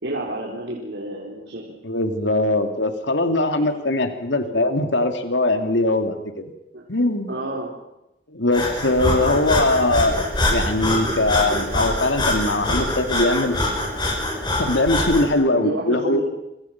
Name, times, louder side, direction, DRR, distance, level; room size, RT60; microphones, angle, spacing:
voice 1, 0.0-1.7 3.6-3.7 6.7-6.8 7.3-7.7 9.2-9.4 15.4-16.2, right 1 dB, 75° right, -3 dB, 4.4 m, -30 dB
voice 2, 1.8-6.4 6.9-7.3 8.3-13.5 14.6-16.2, left 2 dB, 75° left, 7 dB, 2.6 m, -21 dB
Breathing, 8.5-15.3, left 1 dB, 25° left, 6.5 m, -24 dB
28.0 x 25.5 x 6.0 m, 0.89 s
head